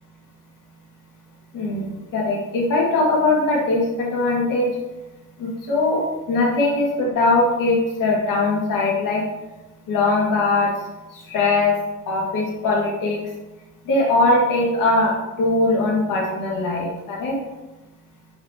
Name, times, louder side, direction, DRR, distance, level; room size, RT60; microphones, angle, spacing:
voice 1, 1.5-4.7 5.4-6.0 6.3-9.2 9.9-10.7 11.3-11.7 12.1-13.2 13.9-15.1 15.4-17.4, left 2 dB, 70° left, -3 dB, 2.3 m, -20 dB
9.2 x 5.7 x 3.0 m, 1.1 s
cardioid pair, 90°, 33 cm